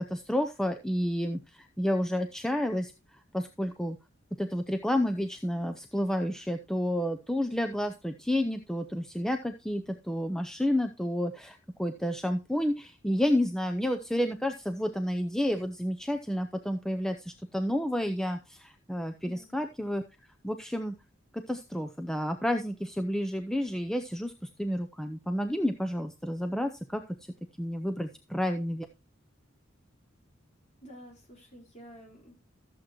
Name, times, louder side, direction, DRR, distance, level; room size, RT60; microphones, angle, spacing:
voice 1, 0.1-2.9 3.3-4.0 4.4-20.0 20.4-21.0 21.3-27.0 27.6-28.9, equal, 5° left, 5 dB, 0.6 m, -30 dB
voice 2, 30.8-32.4, equal, 35° left, 0 dB, 4.6 m, -50 dB
14.0 x 7.6 x 3.0 m, 0.28 s
head